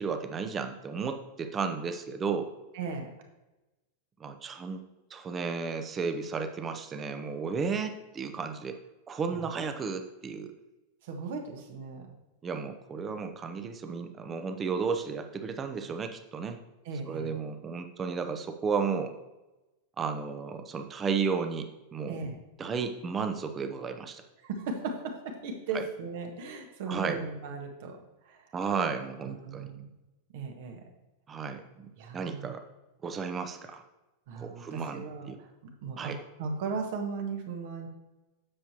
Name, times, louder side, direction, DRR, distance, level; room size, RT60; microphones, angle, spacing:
voice 1, 0.0-2.5 4.2-4.8 5.1-8.8 9.1-10.5 12.4-16.6 17.1-19.1 20.0-22.2 22.6-24.2 25.7-25.8 26.9-27.2 28.5-29.7 31.3-31.9 32.1-32.6 33.0-33.8 34.4-35.4 36.0-36.2, right 5 dB, 20° right, 7 dB, 0.9 m, -33 dB
voice 2, 2.7-3.1 9.3-9.5 11.0-12.1 16.8-17.3 22.1-22.4 24.4-28.0 28.2-28.4 29.3-29.9 30.3-30.8 32.0-32.5 34.3-36.1 36.4-37.9, right 4 dB, 50° right, 3 dB, 1.6 m, -37 dB
9.7 x 7.3 x 2.9 m, 1.0 s
figure-of-eight pair, 90°, 0 cm